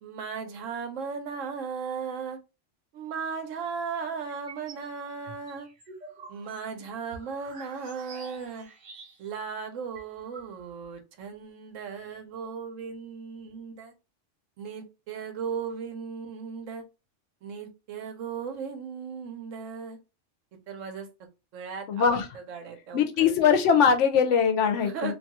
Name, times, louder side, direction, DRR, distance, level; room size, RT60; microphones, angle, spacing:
voice 1, 0.0-2.4 2.9-5.7 6.3-8.7 9.2-13.9 14.6-16.8 17.4-20.0 20.7-21.1 21.5-23.0 24.8-25.1, right 6 dB, 85° right, 6 dB, 1.0 m, -36 dB
sound 1, 4.3-4.9 5.3-9.4 9.7-9.8 10.0-10.9, right 4 dB, 55° right, 0.5 m, -48 dB
voice 2, 21.9-22.3 22.9-25.1, left 7 dB, 75° left, 6 dB, 0.9 m, -21 dB
2.6 x 2.3 x 2.8 m, 0.27 s
omnidirectional pair, 1.3 m